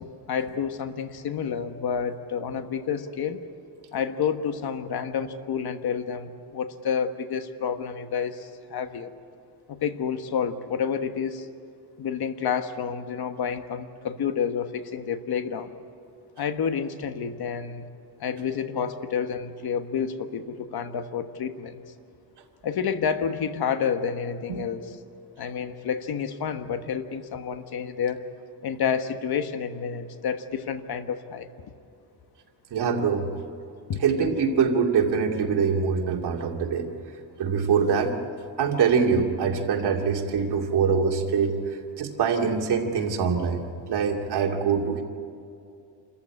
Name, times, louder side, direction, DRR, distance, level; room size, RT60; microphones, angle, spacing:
voice 1, 0.0-3.4 3.9-9.1 9.7-11.5 12.0-15.7 16.4-17.9 18.2-21.8 22.6-24.8 25.4-28.2 28.6-31.5 33.9-34.0, left 7 dB, 65° left, 8 dB, 1.4 m, -29 dB
voice 2, 32.7-33.3 34.0-36.9 37.4-38.1 38.6-41.5 42.0-45.0, right 6 dB, 75° right, 1 dB, 2.6 m, -24 dB
27.5 x 14.5 x 9.8 m, 2.5 s
cardioid pair, 125°, 41 cm